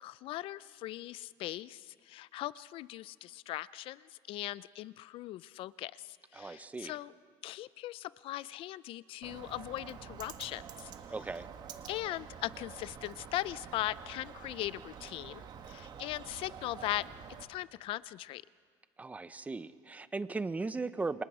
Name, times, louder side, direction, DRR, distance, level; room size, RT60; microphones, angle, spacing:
voice 1, 0.0-7.1 7.4-10.9 11.9-17.1 17.5-18.4, left 15 dB, 55° left, 19 dB, 0.5 m, -39 dB
voice 2, 6.3-7.0 11.1-11.5 19.0-21.2, right 3 dB, 15° right, 13 dB, 0.8 m, -37 dB
Bird, 9.2-17.4, right 7 dB, 40° right, 1.8 m, -48 dB
29.0 x 26.5 x 4.9 m, 2.1 s
cardioid pair, 135°, 11 cm